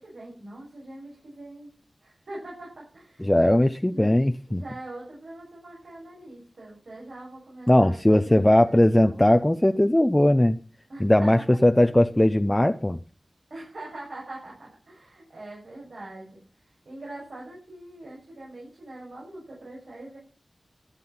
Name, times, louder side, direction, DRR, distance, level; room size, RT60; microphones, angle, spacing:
voice 1, 0.0-1.7 2.0-3.3 3.9-4.1 4.5-9.2 10.9-11.5 13.5-16.4 16.9-20.2, right 2 dB, 80° right, -5 dB, 6.9 m, -43 dB
voice 2, 3.2-4.6 7.7-10.6 11.0-13.0, left 1 dB, 15° left, 7 dB, 0.8 m, -19 dB
13.5 x 9.9 x 5.8 m, 0.37 s
wide cardioid pair, 60°, 0 cm